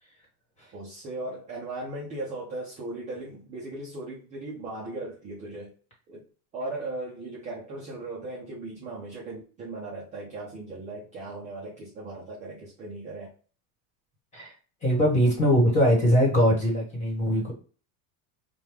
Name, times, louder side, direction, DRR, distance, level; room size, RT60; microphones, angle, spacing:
voice 1, 0.7-5.7 6.1-6.3 6.5-13.3, right 2 dB, 20° right, 0.4 m, -37 dB
voice 2, 14.8-17.5, equal, 15° left, 1.3 m, -21 dB
5.1 x 2.2 x 3.1 m
cardioid pair, 180°, 44 cm